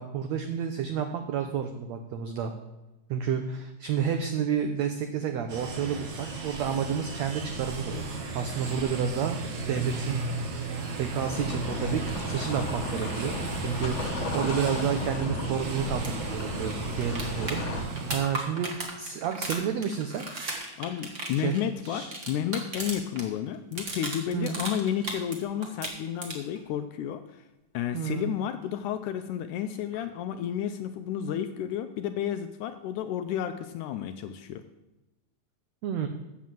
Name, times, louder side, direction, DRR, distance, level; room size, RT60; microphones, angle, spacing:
voice 1, 0.0-2.5 3.1-8.0 8.3-9.4 9.7-10.3 11.0-20.3 21.3-21.6 21.8-22.2 24.3-24.6 27.9-28.3 29.9-30.1 35.8-36.1, right 7 dB, 85° right, 6 dB, 1.5 m, -30 dB
sound 1, 5.5-18.2, right 4 dB, 60° right, 1.1 m, -35 dB
sound 2, 11.2-17.8, left 2 dB, 50° left, 1.6 m, -35 dB
sound 3, 16.0-16.1 16.4-16.5 16.7-23.3 23.5-25.4 25.6-26.6 28.6-28.7, right 2 dB, 40° right, 1.0 m, -36 dB
voice 2, 20.8-27.4 27.7-34.7, left 10 dB, 80° left, 8 dB, 1.8 m, -31 dB
8.3 x 7.3 x 7.6 m, 1.0 s
omnidirectional pair, 4.0 m